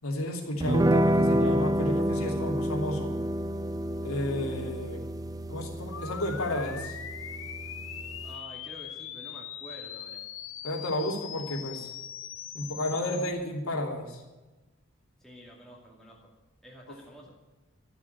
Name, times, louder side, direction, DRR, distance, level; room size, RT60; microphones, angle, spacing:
voice 1, 0.0-3.2 4.0-5.0 5.5-6.9 10.6-11.9 12.5-14.2 16.9-17.0, left 1 dB, 80° left, 1 dB, 3.0 m, -32 dB
sound 1, 0.6-8.4, right 1 dB, 15° right, 0.4 m, -29 dB
sound 2, 5.9-13.3, left 9 dB, 65° left, 1.0 m, -41 dB
voice 2, 8.2-10.3 15.2-16.3 16.6-17.3, equal, ahead, -3 dB, 2.4 m, -49 dB
13.0 x 7.5 x 9.6 m, 1.1 s
head